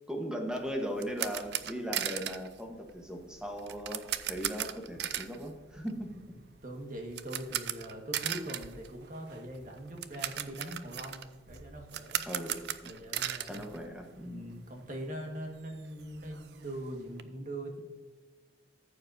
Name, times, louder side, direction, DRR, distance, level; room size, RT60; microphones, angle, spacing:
voice 1, 0.1-6.2 12.3-13.0 13.4-14.5, equal, 5° right, 2 dB, 1.1 m, -38 dB
sound 1, 0.5-14.5 14.8-14.9 15.3-15.4 15.7-17.2, right 11 dB, 60° right, 0.4 m, -38 dB
voice 2, 6.3-12.2 12.8-13.7 14.2-17.8, right 1 dB, 45° right, 2 dB, 1.6 m, -42 dB
14.0 x 7.1 x 2.7 m, 1.5 s
head